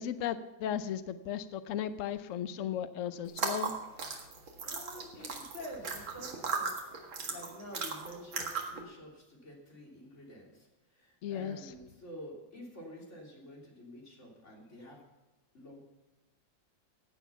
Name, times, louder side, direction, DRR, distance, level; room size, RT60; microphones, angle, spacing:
voice 1, 0.0-3.7 4.1-4.2 11.2-11.7, left 9 dB, 75° left, 12 dB, 0.7 m, -36 dB
sound 1, 3.3-8.8, right 5 dB, 90° right, 2.6 m, -37 dB
voice 2, 4.6-6.8 7.2-15.0 15.5-15.8, equal, 35° left, -2 dB, 3.7 m, -49 dB
15.5 x 9.3 x 5.7 m, 1.1 s
omnidirectional pair, 2.1 m